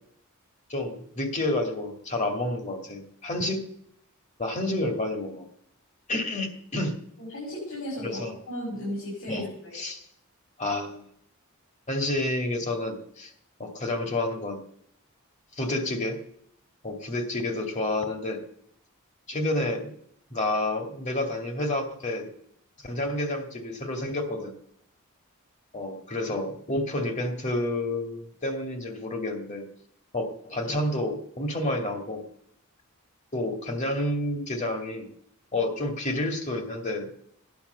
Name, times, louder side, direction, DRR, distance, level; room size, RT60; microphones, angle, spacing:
voice 1, 0.7-3.6 4.4-5.5 6.1-6.9 8.0-8.3 9.3-9.5 9.7-10.0 10.6-11.0 11.9-13.3 13.6-14.6 15.5-16.2 16.8-18.4 19.3-19.9 20.3-22.3 22.8-24.5 25.7-29.6 30.1-32.2 33.3-35.1 35.5-37.1, left 1 dB, 35° left, 4 dB, 2.3 m, -29 dB
voice 2, 7.2-9.7, left 1 dB, 70° left, -5 dB, 6.2 m, -35 dB
17.5 x 10.5 x 6.8 m, 0.73 s
head